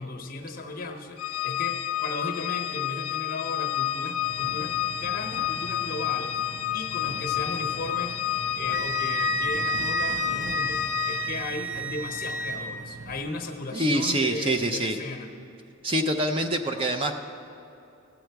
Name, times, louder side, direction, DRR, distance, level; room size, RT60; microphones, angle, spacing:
voice 1, 0.0-15.3, left 2 dB, 40° left, 4 dB, 0.9 m, -36 dB
Organ, 1.2-11.6, left 13 dB, 75° left, 0.4 m, -30 dB
sound 1, 4.2-13.2, right 3 dB, 85° right, 0.7 m, -42 dB
Wind instrument woodwind instrument, 8.7-12.6, right 3 dB, 70° right, 1.5 m, -31 dB
voice 2, 13.7-15.0 15.8-17.1, right 1 dB, 25° right, 6 dB, 0.5 m, -25 dB
16.5 x 7.6 x 4.6 m, 2.7 s
head